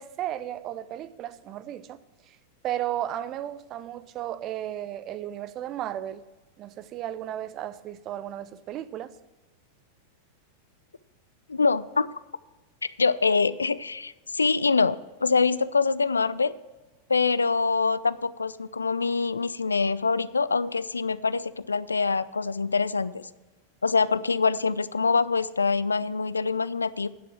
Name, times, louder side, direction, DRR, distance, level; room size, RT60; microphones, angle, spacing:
voice 1, 0.0-2.0 2.3-2.4 2.6-6.2 6.6-9.1, right 12 dB, 35° right, 0.6 m, -34 dB
voice 2, 11.5-12.1 13.0-16.5 17.1-23.3 23.8-27.1, left 4 dB, 75° left, 0.3 m, -25 dB
10.0 x 7.6 x 6.1 m
figure-of-eight pair, 90°, 0 cm